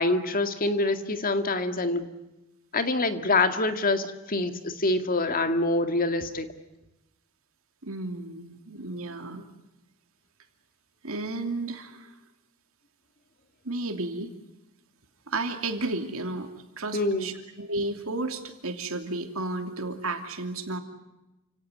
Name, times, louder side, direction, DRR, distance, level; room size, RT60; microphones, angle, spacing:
voice 1, 0.0-2.1 2.7-6.5 16.9-17.4, left 2 dB, 40° left, 8 dB, 2.0 m, -25 dB
voice 2, 7.8-9.4 11.0-12.1 13.6-14.3 15.3-16.5 16.8-20.8, right 2 dB, 70° right, 6 dB, 2.9 m, -32 dB
29.0 x 17.5 x 9.5 m, 0.97 s
head